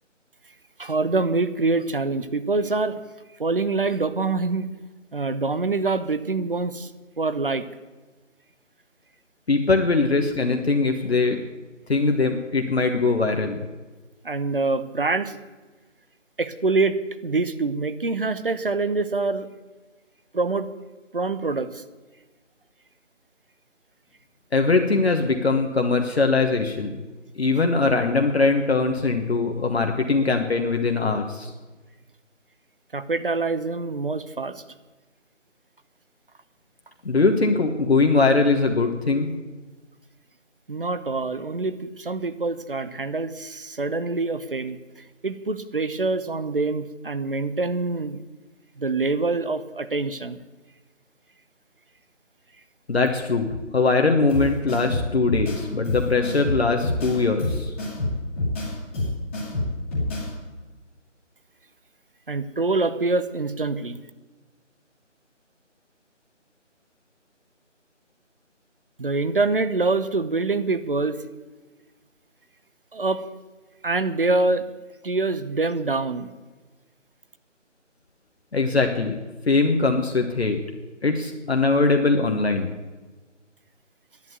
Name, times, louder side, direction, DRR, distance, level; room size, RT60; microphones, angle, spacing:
voice 1, 0.8-3.0 3.4-4.7 5.1-6.9 7.2-7.6 14.2-15.4 16.4-17.0 17.2-19.5 20.3-20.7 21.1-21.8 32.9-34.6 40.7-48.2 48.8-50.4 62.3-64.0 69.0-71.2 72.9-73.2 73.8-74.6 75.0-76.3, right 3 dB, 45° right, 12 dB, 0.8 m, -25 dB
voice 2, 9.5-11.4 11.9-13.6 24.5-27.0 27.4-31.5 37.0-39.3 52.9-57.7 78.5-79.2 79.5-80.6 81.0-82.7, left 3 dB, 55° left, 3 dB, 1.3 m, -21 dB
sound 1, 54.3-60.3, left 1 dB, 10° left, 1.9 m, -27 dB
10.5 x 9.1 x 9.4 m, 1.2 s
figure-of-eight pair, 165°, 37 cm